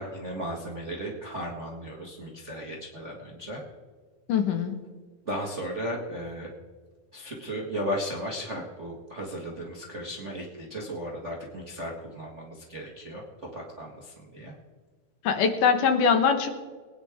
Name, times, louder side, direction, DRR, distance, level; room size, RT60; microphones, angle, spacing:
voice 1, 0.0-3.6 5.2-6.5 7.1-13.2 13.5-14.5, equal, 35° right, -1 dB, 1.1 m, -35 dB
voice 2, 4.3-4.8 15.2-16.5, left 6 dB, 70° left, 7 dB, 2.5 m, -22 dB
22.0 x 10.0 x 3.6 m, 1.5 s
omnidirectional pair, 4.0 m